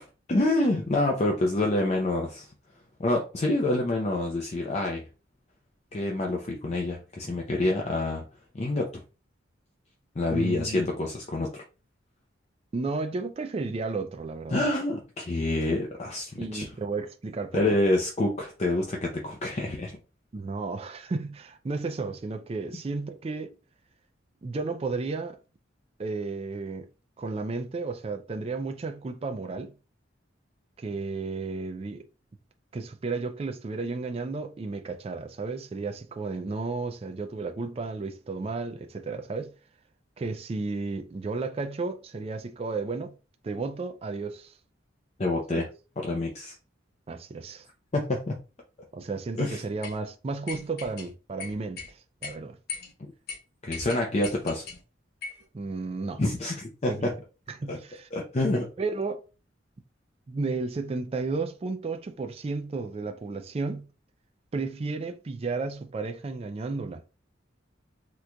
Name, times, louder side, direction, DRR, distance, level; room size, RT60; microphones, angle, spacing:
voice 1, 0.3-2.5 3.0-5.0 5.9-8.2 8.5-8.9 10.2-11.5 14.5-16.7 17.5-20.0 45.2-45.7 46.0-46.5 47.9-48.3 49.4-49.6 53.6-54.7 56.2-57.1 57.7-57.8 58.1-58.7, left 2 dB, 35° left, 0.5 m, -27 dB
voice 2, 10.3-10.8 12.7-14.6 16.4-17.8 20.3-23.5 24.4-25.4 26.0-26.9 27.2-29.7 30.8-32.0 32.7-39.5 40.2-43.1 43.4-44.5 45.5-45.7 47.1-47.7 48.9-52.6 55.5-56.2 56.9-57.1 57.5-58.1 58.8-59.2 60.3-63.9 64.5-67.0, right 3 dB, 30° right, 0.3 m, -33 dB
sound 1, 49.8-50.0 50.5-51.1 51.4-51.9 52.2-52.3 52.7-52.9 53.3-53.4 53.7-54.8 55.2-55.4, left 5 dB, 55° left, 0.8 m, -38 dB
3.7 x 3.0 x 2.2 m
head